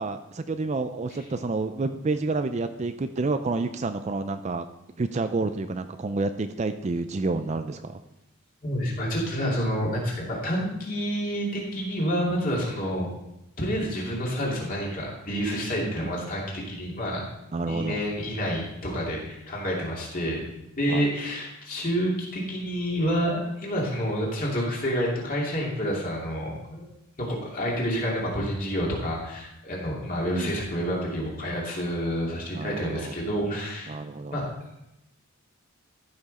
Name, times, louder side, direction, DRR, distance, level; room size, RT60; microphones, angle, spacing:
voice 1, 0.0-4.7 5.0-8.0 16.1-16.3 17.5-18.0 20.9-21.1 30.3-30.6 32.5-33.2 33.9-34.4, right 3 dB, 30° right, 9 dB, 0.3 m, -29 dB
voice 2, 8.6-13.1 13.6-17.2 17.6-20.4 20.7-26.8 27.2-33.9 34.3-34.5, equal, 40° left, -4 dB, 2.7 m, -28 dB
14.0 x 6.0 x 4.2 m, 0.91 s
head